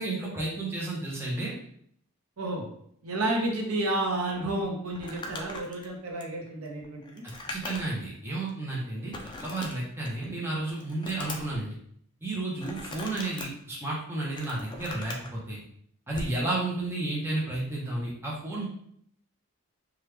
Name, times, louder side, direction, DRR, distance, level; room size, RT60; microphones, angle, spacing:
voice 1, 0.0-1.5 7.5-9.1 9.4-11.7 12.2-15.6 16.1-18.6, right 2 dB, 10° right, -5 dB, 0.7 m, -32 dB
voice 2, 3.0-7.2, right 2 dB, 80° right, 0 dB, 0.8 m, -31 dB
Crumpling crinkling, 4.9-8.1 8.5-8.6 9.1-10.3 10.6-11.6 12.6-13.5 14.1-15.3 16.1-16.4, left 2 dB, 20° left, 0.3 m, -40 dB
3.0 x 2.3 x 3.3 m, 0.66 s
head